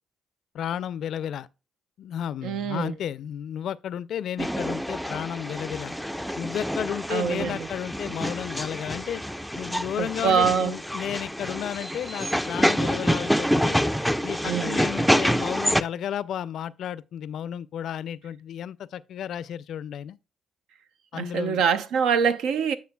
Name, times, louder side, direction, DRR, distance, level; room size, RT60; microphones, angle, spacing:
voice 1, 0.5-1.5 2.0-6.0 6.4-9.2 9.5-13.8 14.2-20.2 21.1-21.6, left 9 dB, 70° left, 0.3 m, -33 dB
voice 2, 2.4-2.9 7.1-7.7 10.0-10.7 14.4-14.8 21.1-22.8, right 7 dB, 85° right, 0.6 m, -24 dB
sound 1, 4.4-15.8, equal, ahead, 0.4 m, -27 dB
9.5 x 6.2 x 2.2 m
cardioid pair, 90°, 0 cm